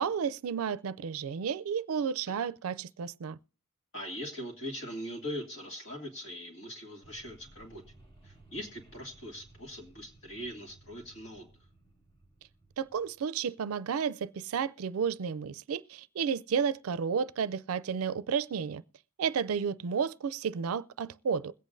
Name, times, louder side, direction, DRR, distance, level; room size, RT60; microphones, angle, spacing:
voice 1, 0.0-3.4 12.8-18.8 19.2-21.5, right 6 dB, 85° right, 0.4 m, -32 dB
voice 2, 3.9-7.8 8.2-11.5, equal, 60° left, 2.5 m, -41 dB
sound 1, 7.0-13.2, right 2 dB, 25° left, 1.8 m, -58 dB
21.5 x 8.3 x 2.6 m
head